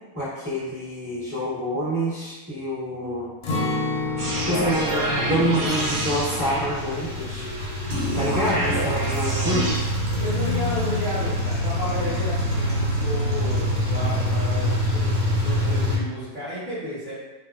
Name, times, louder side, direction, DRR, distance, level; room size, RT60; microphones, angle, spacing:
voice 1, 0.1-3.3 4.3-7.4 8.2-9.9, equal, 10° right, -13 dB, 1.3 m, -27 dB
Acoustic guitar, 3.4-9.3 9.6-9.8 10.3-10.8, left 3 dB, 65° left, 0.9 m, -32 dB
sound 1, 4.0-16.0, equal, 75° right, 1.3 m, -26 dB
sound 2, 4.2-7.1 7.9-9.7, right 1 dB, 60° right, 1.0 m, -27 dB
voice 2, 10.2-17.1, equal, 40° right, -13 dB, 0.8 m, -32 dB
2.7 x 2.3 x 2.3 m, 1.2 s
omnidirectional pair, 1.7 m